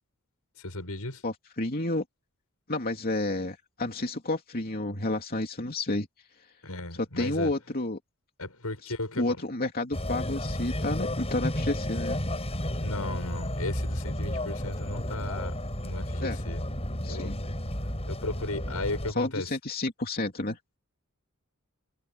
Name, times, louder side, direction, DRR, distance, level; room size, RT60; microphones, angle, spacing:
voice 1, 0.6-1.2 6.6-7.5 8.4-9.2 12.8-15.5 15.8-16.6 17.0-17.3 18.1-19.5, left 2 dB, 85° left, 7.0 m, -35 dB
voice 2, 1.2-2.0 2.7-6.1 7.2-8.0 8.8-12.2 16.2-16.4 17.0-17.4 19.1-20.6, left 2 dB, 45° left, 2.9 m, -30 dB
sound 1, 9.9-19.1, left 1 dB, 30° left, 7.8 m, -32 dB
head